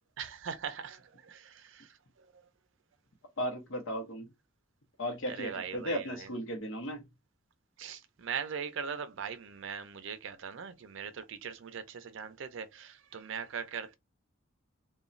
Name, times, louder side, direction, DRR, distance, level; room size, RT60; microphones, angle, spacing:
voice 1, 0.2-2.4 5.3-6.3 7.8-13.9, right 6 dB, 65° right, 0.5 m, -40 dB
voice 2, 3.4-4.3 5.0-7.1, equal, 65° left, 0.8 m, -36 dB
2.9 x 2.2 x 2.5 m
head